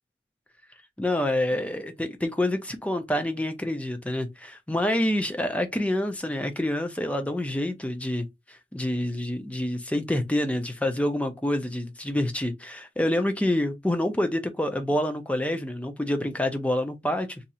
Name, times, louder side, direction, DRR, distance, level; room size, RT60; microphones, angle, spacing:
voice 1, 1.0-8.3 8.7-17.4, left 1 dB, 10° left, 0.4 m, -27 dB
2.7 x 2.4 x 4.1 m
head